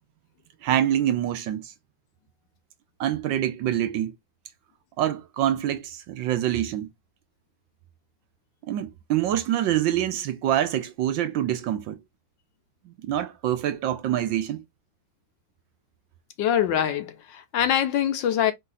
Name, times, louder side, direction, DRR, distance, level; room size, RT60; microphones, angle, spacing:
voice 1, 0.6-1.7 3.0-4.1 5.0-6.9 8.7-12.0 12.9-14.6, right 11 dB, 70° right, 1.3 m, -25 dB
voice 2, 16.4-18.5, left 10 dB, 70° left, 1.2 m, -24 dB
4.6 x 2.6 x 3.9 m
omnidirectional pair, 2.3 m